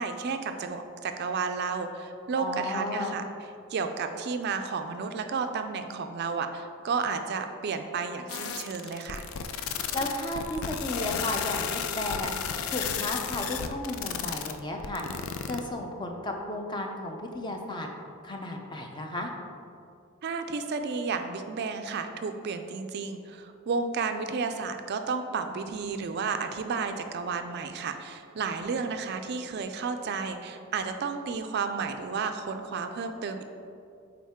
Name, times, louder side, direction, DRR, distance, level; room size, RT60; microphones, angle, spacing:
voice 1, 0.0-3.2 3.7-9.2 20.2-33.4, right 5 dB, 50° right, 7 dB, 0.3 m, -32 dB
voice 2, 2.4-3.2 9.9-12.3 12.7-15.0 15.5-17.9 18.2-19.3, left 1 dB, 20° left, 2 dB, 0.6 m, -33 dB
sound 1, 8.3-15.6, left 7 dB, 75° left, 0.4 m, -33 dB
8.5 x 3.8 x 3.6 m, 2.5 s
head